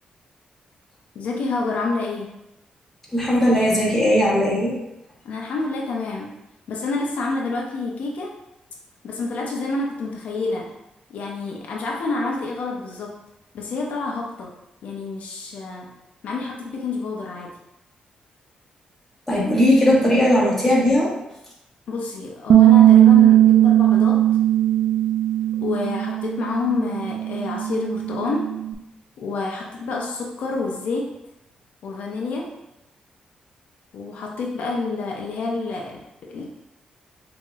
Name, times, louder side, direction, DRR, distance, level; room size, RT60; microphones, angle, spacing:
voice 1, 1.1-2.3 5.2-6.3 6.7-8.3 9.0-10.7 11.1-13.2 13.5-14.5 14.8-15.9 16.2-17.5 21.9-24.2 25.6-28.5 29.2-31.1 31.8-32.6 33.9-36.5, left 3 dB, 75° left, -1 dB, 0.6 m, -28 dB
voice 2, 3.1-4.8 19.3-21.1, equal, 10° left, -6 dB, 1.3 m, -18 dB
Bass guitar, 22.5-28.7, right 12 dB, 65° right, 0.4 m, -17 dB
5.5 x 2.9 x 2.4 m, 0.89 s
cardioid pair, 125°, 3 cm